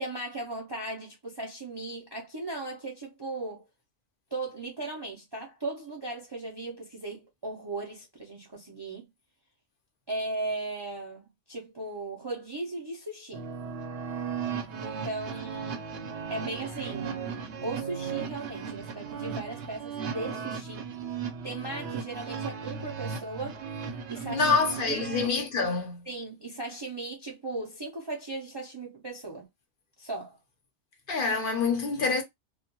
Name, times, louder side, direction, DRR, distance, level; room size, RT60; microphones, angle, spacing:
voice 1, 0.0-3.6 4.3-9.1 10.1-13.5 14.8-15.9 16.3-17.3 17.6-20.9 21.4-23.6 24.1-24.5 24.9-25.0 26.1-29.5 30.0-30.4, right 2 dB, 35° right, 0.4 m, -37 dB
sound 1, 13.3-25.3, right 6 dB, 80° right, 0.9 m, -36 dB
voice 2, 24.3-26.0 31.1-32.2, left 4 dB, 55° left, 0.8 m, -26 dB
2.3 x 2.2 x 2.7 m
omnidirectional pair, 1.2 m